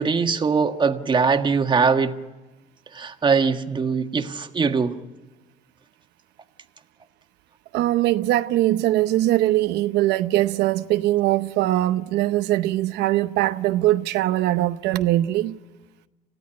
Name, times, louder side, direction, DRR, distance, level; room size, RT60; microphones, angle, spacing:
voice 1, 0.0-2.2 2.9-5.0, right 5 dB, 30° right, 1.5 m, -21 dB
voice 2, 7.7-15.6, right 15 dB, 85° right, 0.8 m, -21 dB
28.0 x 16.0 x 9.6 m
cardioid pair, 110°, 17 cm